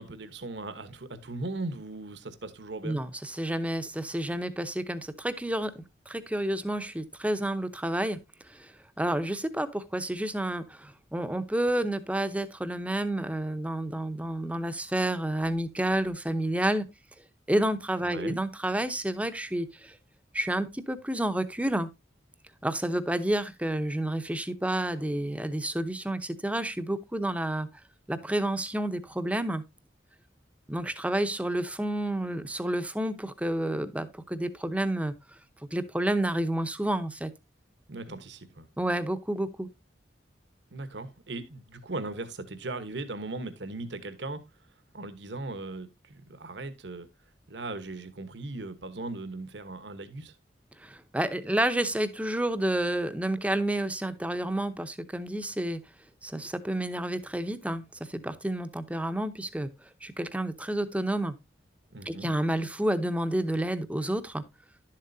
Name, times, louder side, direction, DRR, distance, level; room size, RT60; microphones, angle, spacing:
voice 1, 0.0-3.0 18.0-18.4 37.9-38.7 40.7-44.4 44.9-47.1 47.5-50.3 61.9-62.3, right 2 dB, 70° right, 1.1 m, -38 dB
voice 2, 2.8-8.2 8.4-16.9 17.5-20.0 20.3-21.9 22.6-27.7 28.1-29.6 30.7-35.1 35.7-37.3 38.8-39.7 50.8-55.8 56.2-59.7 60.0-61.3 62.1-64.4, right 1 dB, 5° right, 0.7 m, -30 dB
11.5 x 7.4 x 2.7 m
head